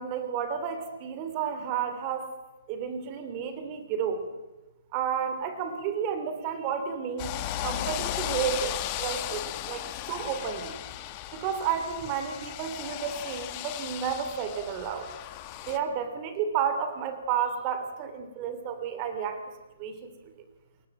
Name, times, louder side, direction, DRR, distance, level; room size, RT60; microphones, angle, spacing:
voice 1, 0.0-2.3 2.7-4.3 4.9-7.3 7.6-10.8 11.3-15.1 15.7-19.4 19.8-20.1, right 7 dB, 25° right, 9 dB, 3.1 m, -31 dB
sound 1, 7.2-15.8, left 13 dB, 25° left, 1.7 m, -36 dB
29.5 x 21.5 x 8.9 m, 1.1 s
hypercardioid pair, 165°, 0 cm